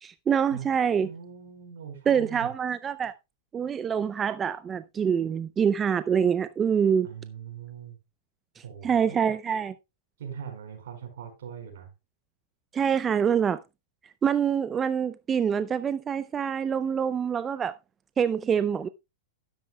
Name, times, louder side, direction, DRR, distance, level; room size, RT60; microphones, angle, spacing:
voice 1, 0.0-1.1 2.1-3.1 3.5-7.1 8.8-9.7 12.7-13.6 14.2-17.7 18.2-18.9, right 7 dB, 25° right, 0.4 m, -25 dB
voice 2, 1.0-2.5 7.0-8.0 8.6-9.2 10.2-11.9, right 8 dB, 70° right, 4.7 m, -41 dB
12.0 x 10.5 x 2.3 m
hypercardioid pair, 115°, 0 cm